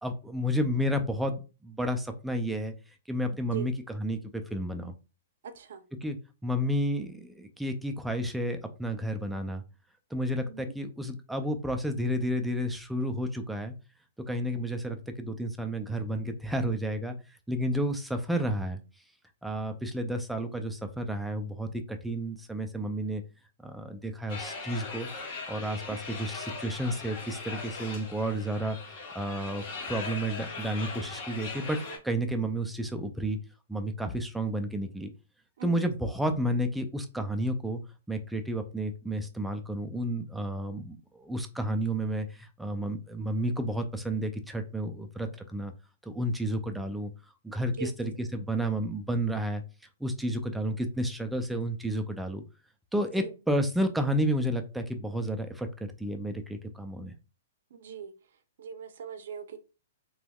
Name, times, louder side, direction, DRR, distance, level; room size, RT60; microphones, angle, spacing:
voice 1, 0.0-2.7 3.1-4.9 6.0-6.2 6.4-9.6 10.1-13.7 14.3-17.2 17.5-18.8 19.4-23.2 23.6-25.1 25.5-31.8 32.0-33.4 33.7-35.1 35.6-37.8 38.1-45.7 46.0-47.1 47.4-49.6 50.0-52.4 52.9-57.1, equal, ahead, 5 dB, 0.3 m, -31 dB
voice 2, 5.4-5.8 10.4-10.6 35.6-35.8 47.8-47.9 53.2-53.3 57.7-58.1 58.6-59.6, right 7 dB, 65° right, 9 dB, 0.6 m, -40 dB
sound 1, 24.3-32.0, left 4 dB, 40° left, 1.2 m, -40 dB
3.3 x 3.0 x 2.3 m, 0.31 s
hypercardioid pair, 165°, 0 cm